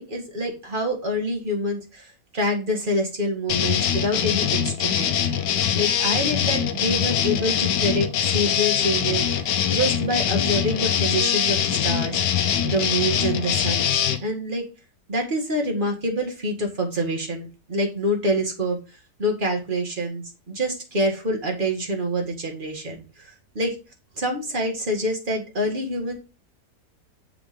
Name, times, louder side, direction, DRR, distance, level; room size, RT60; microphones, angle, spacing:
voice 1, 0.0-5.2 5.7-9.2 9.7-14.6 15.1-18.8 19.2-23.8 24.2-26.1, equal, 30° right, 2 dB, 1.8 m, -26 dB
sound 1, 3.5-14.2, left 9 dB, 85° left, 1.4 m, -23 dB
7.1 x 3.7 x 4.9 m, 0.32 s
omnidirectional pair, 1.8 m